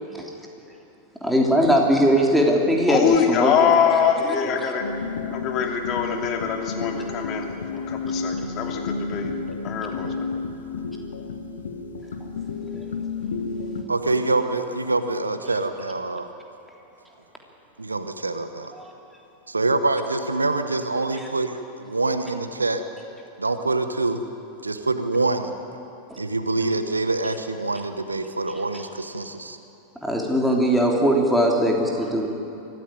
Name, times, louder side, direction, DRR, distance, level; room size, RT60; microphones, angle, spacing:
voice 1, 1.2-3.9 4.2-4.6 18.8-18.9 26.1-26.2 30.0-32.3, equal, ahead, -1 dB, 3.6 m, -20 dB
voice 2, 2.9-4.8 5.3-9.3 9.6-10.1, left 7 dB, 35° left, 3 dB, 2.7 m, -23 dB
sound 1, 4.8-13.8, left 4 dB, 65° left, 1.5 m, -31 dB
voice 3, 13.9-16.3 17.8-18.7 19.5-22.8 23.4-24.2 24.6-25.5 26.2-29.6, right 2 dB, 80° right, 9 dB, 1.2 m, -25 dB
24.0 x 14.5 x 9.3 m, 2.8 s
figure-of-eight pair, 90°, 0 cm